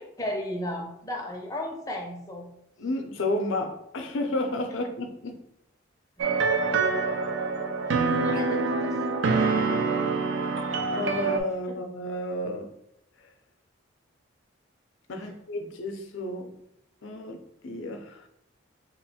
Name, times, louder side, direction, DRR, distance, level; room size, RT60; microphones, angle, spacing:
voice 1, 0.0-2.5 7.8-9.9 11.7-11.8 15.1-15.3, left 1 dB, 15° left, 0.5 m, -36 dB
voice 2, 2.8-5.5 8.3-8.4 10.4-10.6 10.9-12.7 15.1-16.6 17.0-18.2, left 2 dB, 65° left, 0.5 m, -32 dB
sound 1, 6.2-11.4, right 4 dB, 60° right, 0.4 m, -25 dB
3.0 x 2.5 x 4.1 m
head